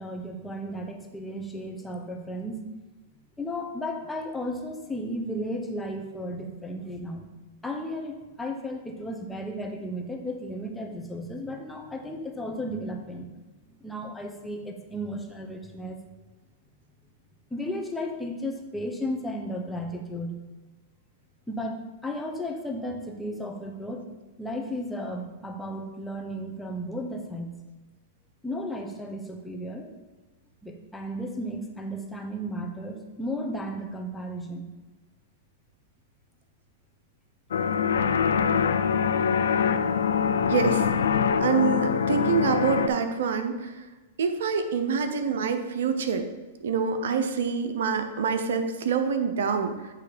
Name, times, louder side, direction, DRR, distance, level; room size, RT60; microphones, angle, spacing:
voice 1, 0.0-2.6 3.4-7.3 7.6-13.3 13.7-16.0 17.5-20.4 21.5-24.1 24.4-27.5 28.4-29.9 30.6-34.7, equal, 5° left, 1 dB, 1.0 m, -34 dB
sound 1, 37.5-42.9, left 7 dB, 75° left, 0.4 m, -24 dB
voice 2, 40.5-40.9 41.4-43.9 44.2-46.3 46.6-49.9, right 6 dB, 75° right, 7 dB, 0.7 m, -26 dB
8.5 x 3.1 x 5.0 m, 1.2 s
hypercardioid pair, 110°, 0 cm